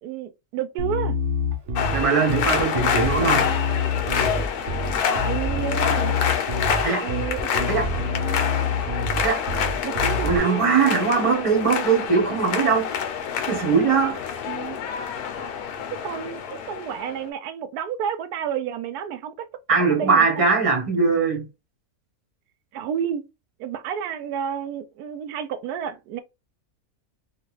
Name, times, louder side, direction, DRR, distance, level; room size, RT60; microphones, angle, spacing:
voice 1, 0.0-1.2 5.0-6.2 7.0-7.7 9.8-10.7 14.5-14.8 16.0-19.5 19.7-20.5 22.7-23.2 23.6-26.2, right 8 dB, 90° right, 1.1 m, -30 dB
Bass guitar, 0.8-10.4, left 3 dB, 55° right, 1.0 m, -27 dB
sound 1, 1.8-17.2, left 7 dB, 80° left, 1.2 m, -27 dB
voice 2, 1.9-3.5 6.8-7.1 7.7-7.9 9.2-9.4 10.2-12.9 13.5-14.2 19.7-21.5, right 5 dB, 25° right, 1.1 m, -21 dB
3.7 x 2.4 x 3.1 m
omnidirectional pair, 1.6 m